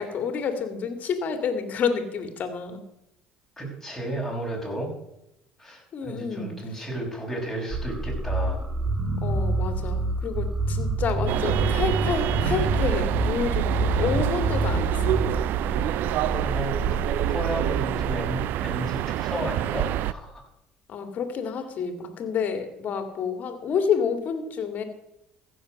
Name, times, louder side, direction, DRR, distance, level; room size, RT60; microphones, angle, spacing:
voice 1, 0.0-2.8 5.9-6.5 9.2-15.2 20.9-24.8, left 6 dB, 50° left, 7 dB, 2.3 m, -29 dB
voice 2, 3.6-4.9 5.6-8.7 16.1-20.4, right 1 dB, 5° left, -2 dB, 5.8 m, -33 dB
sound 1, 7.7-18.6, right 2 dB, 20° right, 1.8 m, -28 dB
sound 2, 11.3-20.1, right 14 dB, 65° right, 0.4 m, -27 dB
15.0 x 6.7 x 6.6 m, 0.85 s
supercardioid pair, 90°, 4 cm